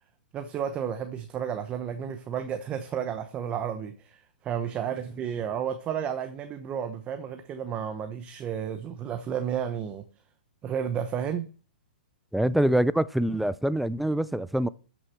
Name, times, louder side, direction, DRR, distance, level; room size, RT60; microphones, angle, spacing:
voice 1, 0.3-10.1 10.6-11.5, right 8 dB, 20° right, 0.9 m, -32 dB
voice 2, 12.3-14.7, right 1 dB, ahead, 0.4 m, -25 dB
12.5 x 6.2 x 5.8 m
hypercardioid pair, 140°, 5 cm